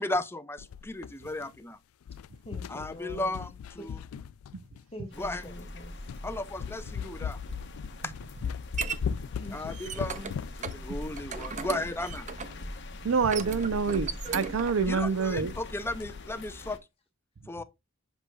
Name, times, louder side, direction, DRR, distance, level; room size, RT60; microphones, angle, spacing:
voice 1, 0.0-1.8 2.7-4.0 5.2-5.4 6.2-7.4 8.0-8.1 9.5-10.2 10.7-12.3 14.9-16.8 17.5-17.6, left 2 dB, 10° left, 0.5 m, -35 dB
sound 1, 0.6-1.7 2.0-5.0 5.6-5.7 6.1-6.3 6.6-12.7 12.9-13.0 13.3-13.4 13.8-14.0 14.4-14.5 14.8-15.2 15.4-16.4, left 7 dB, 90° left, 0.3 m, -39 dB
voice 2, 2.4-3.3 3.8-3.9 4.9-6.2 8.9-10.3, equal, 30° left, 1.5 m, -45 dB
sound 2, 5.1-16.8, left 1 dB, 60° left, 1.0 m, -42 dB
sound 3, 7.9-9.0 9.5-10.3 10.6-10.8 11.2-12.6 13.2-14.8, right 6 dB, 35° right, 0.6 m, -37 dB
voice 3, 13.0-15.5, right 5 dB, 75° right, 0.6 m, -27 dB
7.9 x 6.2 x 2.3 m
head